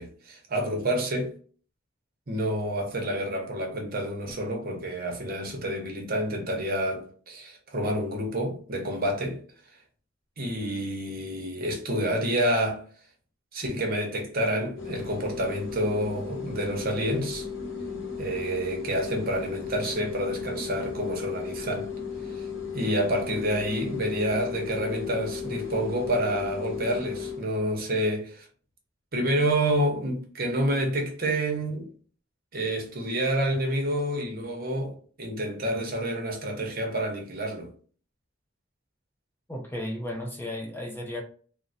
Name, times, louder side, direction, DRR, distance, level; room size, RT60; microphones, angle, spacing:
voice 1, 0.0-1.3 2.3-9.4 10.4-12.8 13.5-17.5 18.2-21.9 22.3-22.5 22.7-28.5 29.1-31.9 32.5-34.9 35.2-37.7, right 1 dB, 50° right, 0.9 m, -28 dB
sound 1, 14.8-27.4, left 6 dB, 70° left, 0.8 m, -35 dB
voice 2, 39.5-41.2, left 1 dB, 10° left, 0.5 m, -34 dB
3.7 x 2.1 x 2.6 m
head